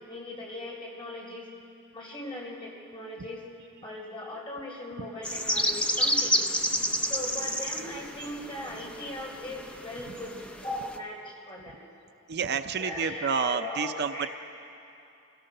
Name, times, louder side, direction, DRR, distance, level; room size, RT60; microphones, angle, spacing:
voice 1, 0.0-1.5 1.9-3.4 3.8-6.4 7.1-11.8 12.8-14.3, left 1 dB, 25° left, -3 dB, 4.4 m, -39 dB
sound 1, 5.2-11.0, equal, 5° left, 0.8 m, -30 dB
voice 2, 12.3-14.3, right 6 dB, 50° right, 9 dB, 0.5 m, -29 dB
26.5 x 16.5 x 6.7 m, 2.7 s
head